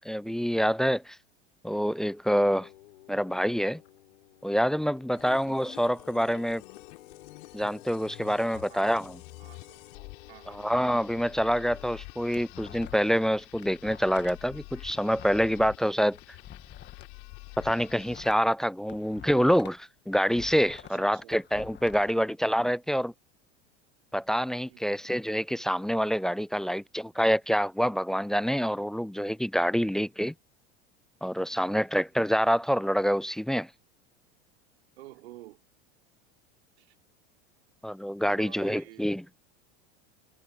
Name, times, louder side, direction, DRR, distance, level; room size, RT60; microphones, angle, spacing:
voice 1, 0.1-1.2 1.6-2.7 3.1-3.8 4.4-6.6 7.5-9.2 10.5-16.2 17.6-23.1 24.1-30.3 31.2-33.7 37.8-39.2, equal, ahead, 0.3 m, -26 dB
Singing, 2.2-11.9, left 15 dB, 80° left, 6.1 m, -54 dB
sound 1, 5.1-18.3, left 30 dB, 65° left, 3.6 m, -48 dB
voice 2, 8.4-8.9 9.4-9.8 10.3-10.6 20.8-21.4 21.9-22.4 24.7-25.0 29.8-30.0 31.5-31.9 35.0-35.7 36.8-37.0 38.2-39.1, right 17 dB, 80° right, 5.9 m, -51 dB
sound 2, 12.1-13.2 13.5-17.1 17.5-19.8 20.1-22.1, left 10 dB, 35° left, 1.6 m, -48 dB
hypercardioid pair, 105°, 32 cm